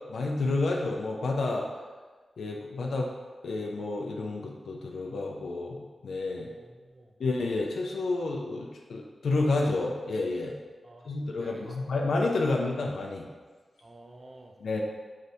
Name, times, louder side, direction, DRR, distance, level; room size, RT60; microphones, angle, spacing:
voice 1, 0.0-1.7 2.4-3.1 3.4-5.8 6.0-6.5 7.2-10.5 11.0-13.3 14.6-14.8, left 3 dB, 85° left, 0 dB, 0.4 m, -30 dB
voice 2, 6.4-7.1 10.8-11.1 11.4-11.8 13.8-14.6, right 2 dB, 50° right, 1 dB, 0.5 m, -50 dB
4.1 x 3.2 x 2.7 m, 1.4 s
cardioid pair, 45°, 0 cm